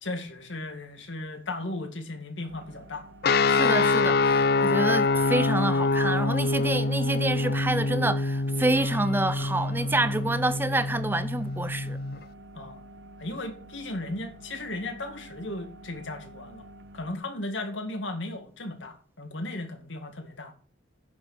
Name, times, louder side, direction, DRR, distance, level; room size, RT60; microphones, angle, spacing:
voice 1, 0.0-3.1 12.5-12.8 13.2-16.6 16.9-20.5, left 2 dB, 80° left, 2.1 m, -36 dB
sound 1, 2.5-17.1, right 1 dB, 65° right, 1.1 m, -49 dB
sound 2, 3.2-12.2, left 3 dB, 55° left, 0.4 m, -25 dB
voice 2, 3.5-12.0, right 2 dB, 10° right, 0.4 m, -28 dB
9.6 x 6.7 x 6.4 m
head